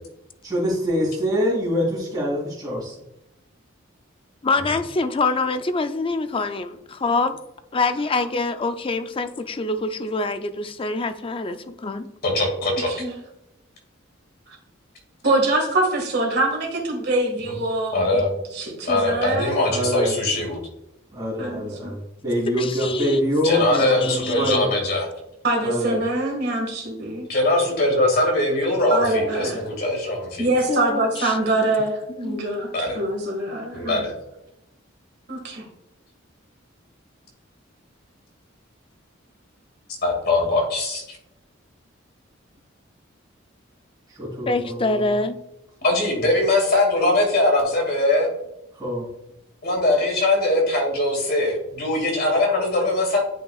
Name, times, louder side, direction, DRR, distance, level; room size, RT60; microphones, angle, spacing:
voice 1, 0.4-2.9 19.6-20.2 21.1-24.7 25.6-26.0 44.1-45.1 48.7-49.1, equal, 20° right, -10 dB, 2.6 m, -25 dB
voice 2, 4.4-6.7 7.0-7.3 7.7-12.1 22.5-23.2 23.6-24.7 30.7-31.5 32.2-32.4 44.5-45.4, left 3 dB, 25° left, 10 dB, 0.4 m, -25 dB
voice 3, 12.2-12.9 17.4-17.5 17.9-18.3 18.8-20.6 23.4-25.1 27.3-30.5 32.7-33.0 33.7-34.1 40.0-41.2 45.8-48.3 49.6-53.2, left 2 dB, 50° left, 1 dB, 2.1 m, -21 dB
voice 4, 12.9-13.2 14.5-14.6 15.2-18.2 18.5-19.6 21.4-22.0 25.4-27.3 28.9-29.6 30.4-34.0 35.3-35.7, right 2 dB, 55° right, 1 dB, 1.9 m, -24 dB
9.2 x 5.6 x 2.4 m, 0.88 s
head